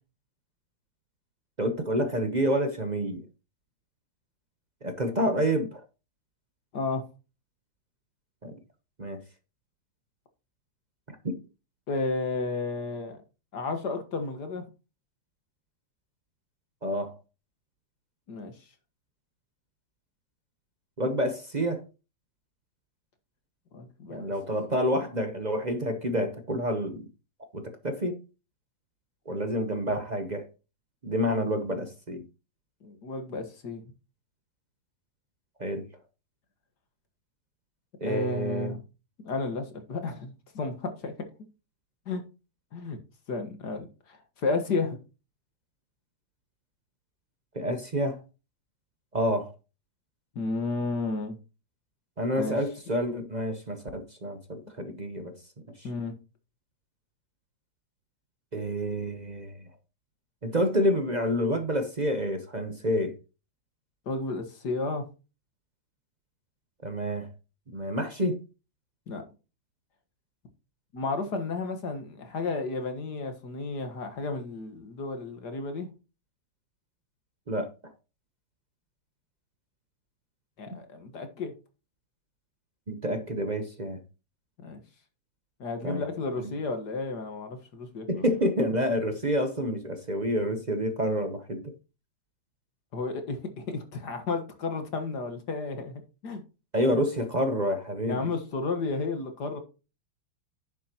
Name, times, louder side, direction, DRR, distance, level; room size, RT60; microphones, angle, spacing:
voice 1, 1.6-3.2 4.8-5.8 8.4-8.5 9.0-9.2 11.1-11.4 16.8-17.1 21.0-21.8 24.1-27.1 27.5-28.2 29.3-30.5 31.0-32.2 35.6-35.9 38.0-38.8 47.5-48.2 49.1-49.5 52.2-55.3 58.5-59.5 60.4-63.2 66.8-67.3 67.7-68.4 77.5-77.7 80.7-80.8 82.9-84.0 85.8-86.0 86.4-86.5 88.1-91.7 96.7-98.2, equal, 35° right, 0.7 m, -28 dB
voice 2, 6.7-7.1 11.9-13.2 13.5-14.6 18.3-18.5 23.7-24.3 32.8-33.8 38.0-38.8 39.2-41.1 42.1-42.2 42.7-43.0 43.3-45.0 50.4-51.4 52.4-52.6 55.8-56.2 64.1-65.0 69.1-69.2 70.9-75.9 80.6-81.5 84.6-84.8 85.6-88.2 92.9-96.4 98.0-99.6, left 3 dB, 60° left, 2.0 m, -32 dB
10.0 x 7.3 x 2.9 m
omnidirectional pair, 2.1 m